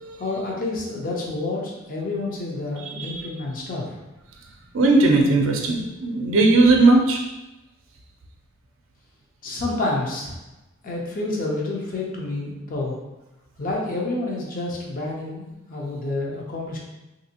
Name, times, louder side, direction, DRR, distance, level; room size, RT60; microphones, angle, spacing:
voice 1, 0.2-3.9 9.4-10.4 10.8-13.0 13.6-16.8, left 2 dB, 45° left, -2 dB, 0.6 m, -29 dB
voice 2, 2.7-3.3 4.7-7.2, right 2 dB, 65° right, 1 dB, 0.5 m, -18 dB
3.3 x 2.7 x 2.8 m, 1.0 s
head